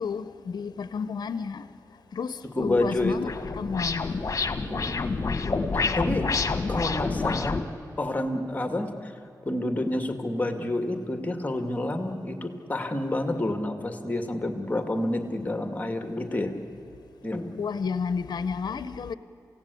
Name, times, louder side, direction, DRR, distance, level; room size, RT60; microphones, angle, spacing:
voice 1, 0.0-1.7 2.1-3.3 3.5-4.2 17.6-19.1, left 5 dB, 70° left, 0.8 m, -31 dB
voice 2, 2.5-3.3 4.6-5.4 5.9-6.3 6.7-7.6 8.0-9.1 9.5-16.5 17.2-17.5, left 1 dB, 20° left, 2.3 m, -29 dB
sound 1, 2.7-7.6, left 4 dB, 45° left, 1.6 m, -28 dB
28.0 x 17.0 x 8.5 m
cardioid pair, 75°, 7 cm